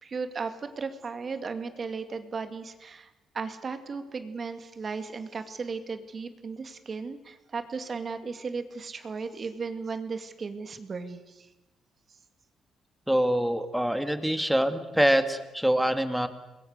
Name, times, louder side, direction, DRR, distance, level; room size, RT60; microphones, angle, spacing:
voice 1, 0.0-3.1 3.3-11.5, right 4 dB, 40° right, 8 dB, 2.4 m, -36 dB
voice 2, 13.1-16.3, equal, 5° right, 8 dB, 2.3 m, -25 dB
28.0 x 21.5 x 6.7 m, 1.0 s
cardioid pair, 90°, 0 cm